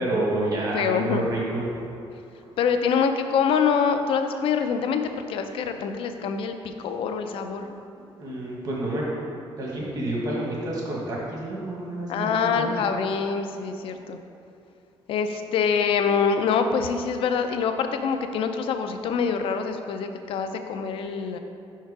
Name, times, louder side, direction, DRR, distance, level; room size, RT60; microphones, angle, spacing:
voice 1, 0.0-1.6 8.2-9.0 9.6-12.9, right 1 dB, 40° right, -4 dB, 1.4 m, -29 dB
voice 2, 0.7-1.3 2.6-7.8 12.1-14.2 15.1-21.4, left 6 dB, 65° left, 7 dB, 0.4 m, -25 dB
5.7 x 4.6 x 4.7 m, 2.7 s
cardioid pair, 180°, 10 cm